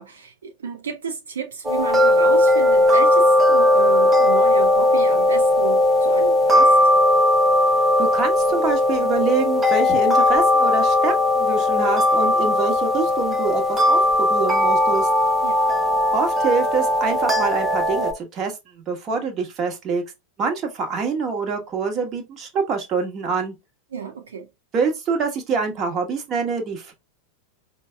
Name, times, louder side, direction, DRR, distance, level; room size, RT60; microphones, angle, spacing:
voice 1, 0.0-6.8 15.4-15.5 23.9-24.5, right 6 dB, 65° right, 0.5 m, -32 dB
sound 1, 1.6-18.1, left 1 dB, 10° right, 0.7 m, -18 dB
voice 2, 8.0-15.1 16.1-18.5 18.9-20.0 20.4-23.5 24.7-26.9, right 5 dB, 30° right, 1.2 m, -25 dB
5.2 x 2.3 x 3.3 m
figure-of-eight pair, 90°, 0 cm